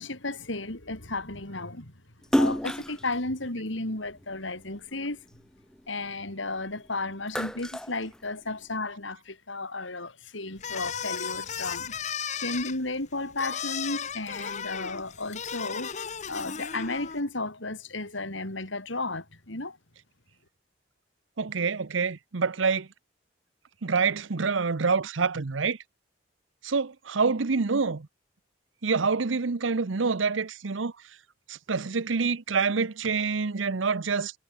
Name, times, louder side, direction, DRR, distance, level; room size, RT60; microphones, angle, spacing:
voice 1, 0.0-1.9 2.4-5.2 5.9-12.0 12.3-15.9 16.3-19.8, left 2 dB, 80° left, 4.8 m, -33 dB
Splash splatter, 2.2-4.8 5.3-6.7 7.0-8.8, equal, 5° left, 1.0 m, -30 dB
sound 1, 10.6-17.2, left 7 dB, 35° left, 0.8 m, -35 dB
voice 2, 21.4-22.9 23.8-25.8 26.6-28.1 28.8-30.9 31.5-34.3, right 4 dB, 85° right, 0.8 m, -26 dB
head